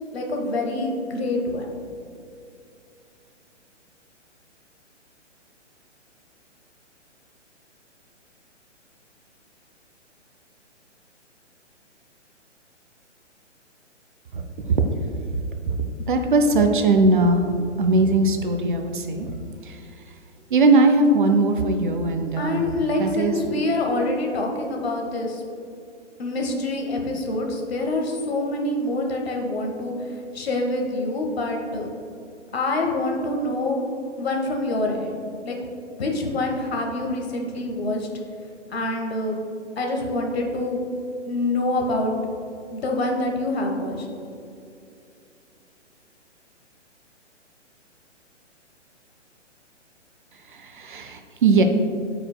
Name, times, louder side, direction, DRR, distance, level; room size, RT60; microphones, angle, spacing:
voice 1, 0.1-1.7 22.4-25.4 26.2-31.9 32.5-33.8 34.2-35.6 36.0-38.1 38.7-39.5 39.8-40.8 41.3-42.1 42.7-44.1, left 2 dB, 55° left, 1 dB, 1.3 m, -26 dB
voice 2, 14.3-14.8 15.7-15.8 16.1-17.5 17.8-19.3 19.6-19.8 20.5-22.6 23.0-23.3 50.5-51.6, right 2 dB, 45° right, 5 dB, 0.5 m, -20 dB
12.5 x 5.0 x 2.2 m, 2.6 s
figure-of-eight pair, 125°, 36 cm